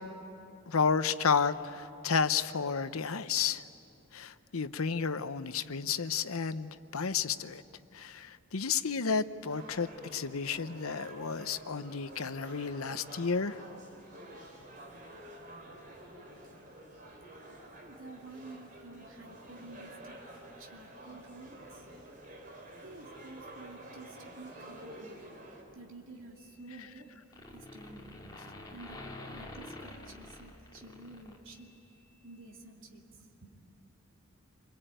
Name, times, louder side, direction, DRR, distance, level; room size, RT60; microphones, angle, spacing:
voice 1, 0.7-3.6 4.1-7.6 7.9-13.6 26.7-26.9, left 5 dB, 85° left, 13 dB, 0.8 m, -32 dB
sound 1, 9.5-25.6, right 1 dB, 40° right, 4.3 m, -50 dB
voice 2, 17.8-20.1 20.6-21.8 22.8-25.2 25.7-27.1 27.5-28.1 28.7-31.7 32.2-33.6, right 2 dB, 70° right, 0 dB, 2.7 m, -51 dB
sound 2, 26.4-27.1 27.3-31.8, left 2 dB, 20° left, 2.7 m, -47 dB
28.5 x 23.0 x 9.1 m, 2.8 s
head